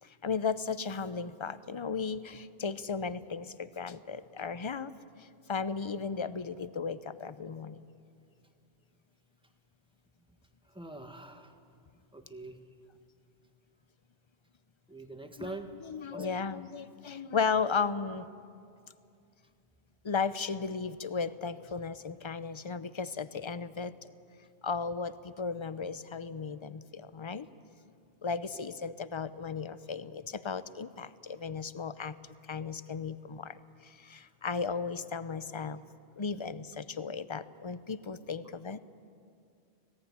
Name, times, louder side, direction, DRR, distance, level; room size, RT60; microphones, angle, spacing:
voice 1, 0.0-4.9 5.2-7.8 15.4-15.5 15.8-18.3 20.0-23.9 24.6-27.5 28.2-32.2 32.4-35.8 36.2-38.8, left 5 dB, 30° left, 14 dB, 0.6 m, -35 dB
voice 2, 10.6-11.6 12.1-12.6 14.9-15.7 16.1-16.4 28.5-28.6, right 2 dB, 5° right, 5 dB, 1.6 m, -44 dB
25.5 x 18.0 x 9.5 m, 2.4 s
omnidirectional pair, 1.1 m